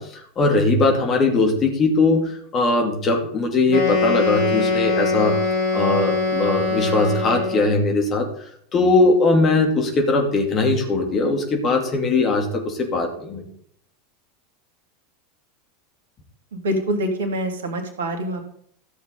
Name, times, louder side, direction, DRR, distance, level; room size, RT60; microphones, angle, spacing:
voice 1, 0.0-5.4 5.7-8.3 8.7-13.4, left 3 dB, 30° left, 2 dB, 2.6 m, -20 dB
Wind instrument woodwind instrument, 3.7-7.8, left 3 dB, 55° left, 4.7 m, -22 dB
voice 2, 16.5-18.5, equal, 65° right, 5 dB, 2.1 m, -25 dB
14.0 x 7.3 x 4.0 m, 0.67 s
figure-of-eight pair, 80°, 0 cm